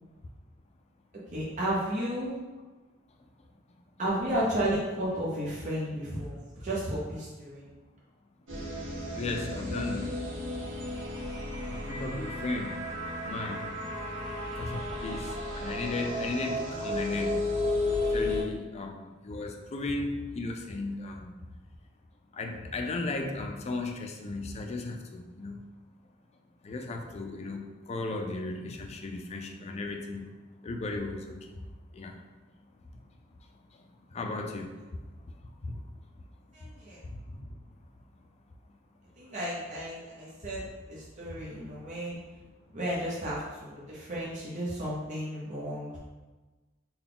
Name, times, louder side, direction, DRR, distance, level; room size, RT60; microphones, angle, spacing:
voice 1, 1.3-2.3 4.0-6.4 6.6-7.6 36.5-37.0 39.2-42.2 42.7-46.0, right 1 dB, 40° right, -7 dB, 0.7 m, -33 dB
sound 1, 8.5-18.4, left 1 dB, 75° right, 0.9 m, -33 dB
voice 2, 9.1-10.2 11.7-13.8 14.6-17.4 18.1-21.3 22.3-25.6 26.6-30.3 30.6-31.6 31.9-32.2 33.7-34.8 35.2-35.3 35.6-35.8 37.0-37.6 41.3-41.4, left 2 dB, 35° left, 3 dB, 0.4 m, -36 dB
3.8 x 2.2 x 3.7 m, 1.2 s
head